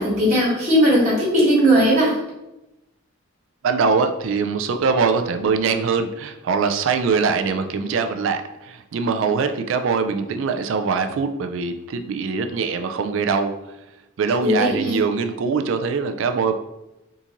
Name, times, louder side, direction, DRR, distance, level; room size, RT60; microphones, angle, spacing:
voice 1, 0.0-2.1 14.4-15.0, equal, 35° right, -6 dB, 1.2 m, -18 dB
voice 2, 3.6-13.8 14.2-16.5, right 5 dB, 65° right, 8 dB, 0.3 m, -22 dB
3.6 x 2.6 x 2.9 m, 0.94 s
head